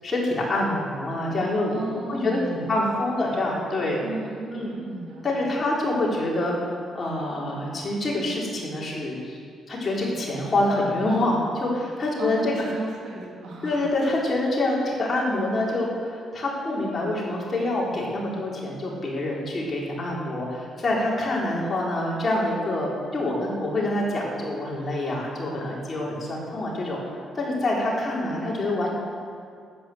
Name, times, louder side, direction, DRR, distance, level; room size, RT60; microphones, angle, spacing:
voice 1, 0.0-1.8 2.1-4.0 4.5-4.7 5.2-9.4 9.7-12.5 13.6-27.0 27.3-28.9, left 1 dB, 35° left, -4 dB, 4.0 m, -26 dB
voice 2, 1.7-3.2 4.0-5.6 12.2-13.9 28.2-28.5, right 2 dB, 75° right, -3 dB, 3.3 m, -35 dB
11.0 x 8.7 x 7.8 m, 2.3 s
cardioid pair, 90°, 0 cm